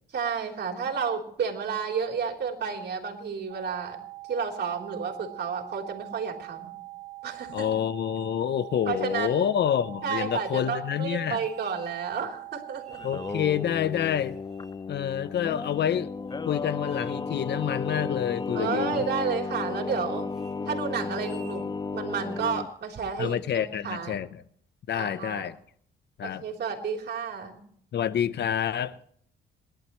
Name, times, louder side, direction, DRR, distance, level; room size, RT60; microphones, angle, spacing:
voice 1, 0.1-4.0 4.3-6.7 7.2-7.7 8.9-9.5 10.0-13.0 18.5-20.3 20.7-21.6 21.9-24.3 24.9-25.5 26.2-27.6, right 6 dB, 55° right, 3.7 m, -31 dB
sound 1, 3.5-13.5, right 23 dB, 85° right, 2.3 m, -43 dB
voice 2, 7.5-11.4 13.0-14.3 14.9-16.1 16.5-19.0 23.2-24.4 24.9-25.6 26.2-26.4 27.9-29.0, left 9 dB, 60° left, 0.8 m, -28 dB
sound 2, 11.3-12.2 12.8-13.7 14.1-14.9 15.3-15.8 16.3-16.4 16.8-17.3 17.6-18.1 18.4-18.6 18.9-19.2 19.6-20.0 20.3-20.6 21.1-21.6, right 3 dB, 5° right, 3.9 m, -54 dB
Singing, 12.9-22.7, left 4 dB, 20° left, 0.5 m, -34 dB
27.0 x 11.5 x 3.1 m
cardioid pair, 90°, 20 cm